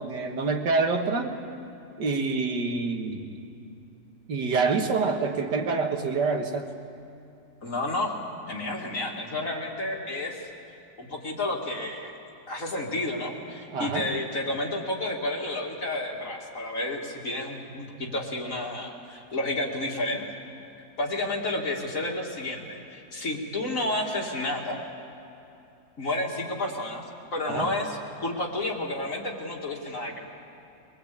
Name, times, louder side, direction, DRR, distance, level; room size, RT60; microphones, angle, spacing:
voice 1, 0.0-1.3 2.0-3.3 4.3-6.7 13.7-14.1 27.5-27.7, right 4 dB, 85° right, 4 dB, 2.2 m, -26 dB
voice 2, 7.6-8.1 8.5-10.5 11.0-12.1 12.5-20.2 21.0-24.8 26.0-27.0 27.3-30.2, left 2 dB, 50° left, -1 dB, 2.9 m, -31 dB
23.0 x 22.5 x 8.6 m, 2.8 s
omnidirectional pair, 1.8 m